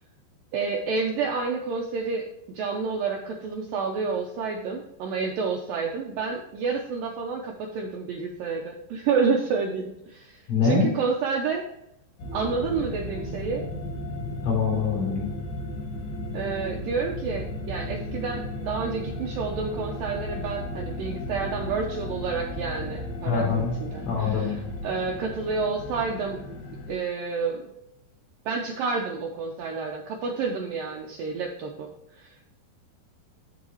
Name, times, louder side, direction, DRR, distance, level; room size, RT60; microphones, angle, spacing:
voice 1, 0.5-11.7 12.3-13.6 16.3-24.6 24.8-26.4 26.9-27.6 28.5-32.5, right 5 dB, 80° right, 1 dB, 2.0 m, -29 dB
voice 2, 10.5-10.9 14.2-15.3 23.3-23.8 24.0-24.6, left 5 dB, 85° left, -3 dB, 5.9 m, -24 dB
sound 1, 12.2-27.0, left 1 dB, 65° left, 3.5 m, -35 dB
14.0 x 4.7 x 3.0 m, 0.81 s
omnidirectional pair, 5.1 m